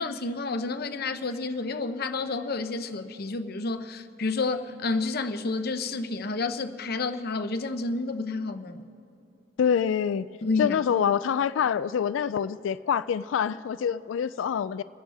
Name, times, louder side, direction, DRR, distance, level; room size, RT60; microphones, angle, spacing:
voice 1, 0.0-8.9 10.4-10.8, left 3 dB, 55° left, 9 dB, 0.8 m, -30 dB
voice 2, 9.6-10.3 10.6-14.8, left 8 dB, 80° left, 15 dB, 0.3 m, -26 dB
27.5 x 10.5 x 3.5 m, 2.9 s
head